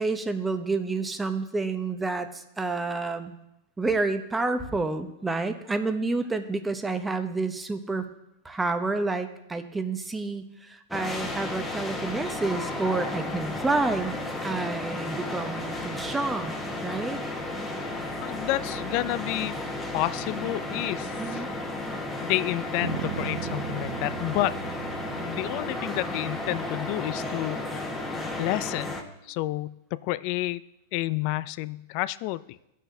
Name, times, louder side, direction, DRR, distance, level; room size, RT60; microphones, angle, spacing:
voice 1, 0.0-3.3 3.8-8.1 8.4-14.1 14.4-17.2 21.2-21.5, right 3 dB, 10° right, 8 dB, 0.8 m, -29 dB
sound 1, 10.9-29.0, left 2 dB, 5° left, 1.2 m, -33 dB
voice 2, 18.2-19.6 19.9-21.5 22.2-24.6 25.3-27.9 28.4-28.9 29.2-30.7 30.9-32.6, left 17 dB, 55° left, 17 dB, 0.3 m, -30 dB
Bass guitar, 22.8-27.2, right 12 dB, 85° right, 0.4 m, -38 dB
15.5 x 6.4 x 2.7 m, 0.89 s
hypercardioid pair, 110°, 0 cm